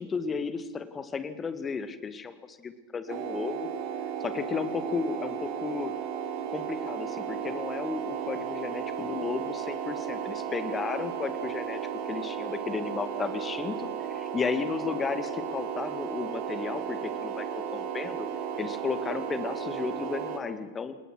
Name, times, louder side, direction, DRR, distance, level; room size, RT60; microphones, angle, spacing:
voice 1, 0.0-3.7 4.2-5.9 6.5-11.8 12.1-18.3 18.6-21.0, left 5 dB, 20° left, 12 dB, 2.0 m, -34 dB
sound 1, 3.1-20.4, right 8 dB, 45° right, 3.6 m, -34 dB
29.5 x 19.0 x 6.2 m, 1.2 s
figure-of-eight pair, 90°, 0 cm